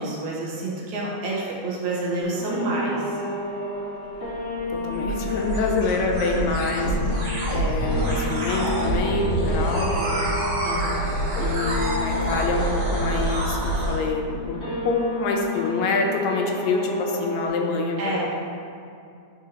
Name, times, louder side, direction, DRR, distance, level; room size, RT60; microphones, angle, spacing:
voice 1, 0.0-3.1 9.9-10.3 10.6-11.1 18.0-18.3, right 2 dB, 80° right, -5 dB, 2.5 m, -28 dB
sound 1, 2.3-17.5, left 2 dB, 60° left, 0.6 m, -32 dB
sound 2, 4.1-14.0, right 1 dB, 60° right, 2.4 m, -26 dB
voice 2, 4.7-10.0 11.4-18.2, left 3 dB, 80° left, 2 dB, 1.8 m, -26 dB
9.5 x 3.7 x 2.8 m, 2.4 s
omnidirectional pair, 3.3 m